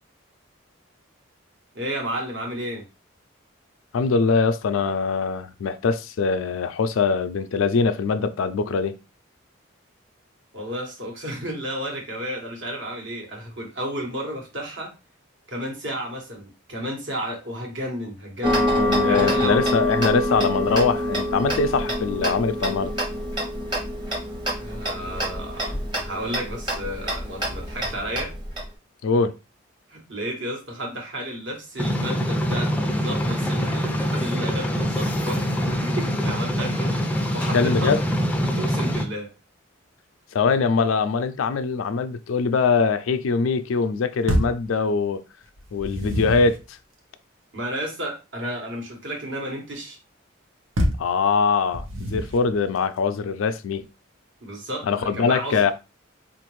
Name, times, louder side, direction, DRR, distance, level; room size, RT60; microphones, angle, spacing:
voice 1, 1.7-2.8 10.5-14.9 15.5-18.8 19.1-19.6 24.6-28.3 29.9-37.9 38.5-39.3 47.5-50.0 54.4-55.6, equal, 60° right, 1.2 m, -32 dB
voice 2, 3.9-9.0 18.8-22.9 29.0-29.3 37.5-38.0 40.3-45.2 45.7-46.8 51.0-53.8 54.8-55.7, left 5 dB, 80° left, 0.4 m, -22 dB
Tick-tock, 18.4-28.6, equal, 20° right, 0.9 m, -26 dB
sound 1, 31.8-39.0, equal, 10° left, 0.4 m, -24 dB
sound 2, 44.3-44.7 45.6-46.6 50.8-51.1 51.7-52.5, equal, 85° right, 0.8 m, -26 dB
3.7 x 2.5 x 3.1 m
head